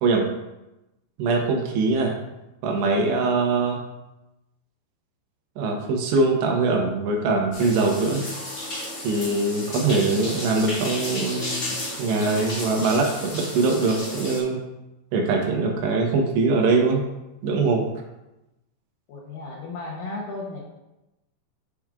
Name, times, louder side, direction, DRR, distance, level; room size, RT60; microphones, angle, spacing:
voice 1, 1.2-2.1 2.6-3.8 5.6-8.2 9.0-14.6 15.1-17.0 17.4-17.8, right 3 dB, 80° right, 1 dB, 3.1 m, -22 dB
sound 1, 7.5-14.4, left 1 dB, 35° left, 1.3 m, -33 dB
voice 2, 19.1-20.6, left 2 dB, 90° left, -2 dB, 1.9 m, -34 dB
8.7 x 6.1 x 2.4 m, 0.97 s
omnidirectional pair, 5.0 m